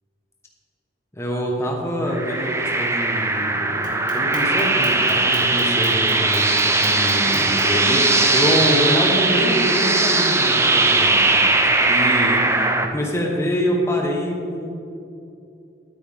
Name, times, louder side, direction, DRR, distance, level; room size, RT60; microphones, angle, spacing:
voice 1, 1.1-14.7, equal, 15° left, 0 dB, 1.4 m, -25 dB
sound 1, 2.1-12.9, right 2 dB, 15° right, 0.6 m, -19 dB
Clock, 3.8-7.8, right 4 dB, 45° right, 2.1 m, -40 dB
10.5 x 9.2 x 3.7 m, 2.6 s
head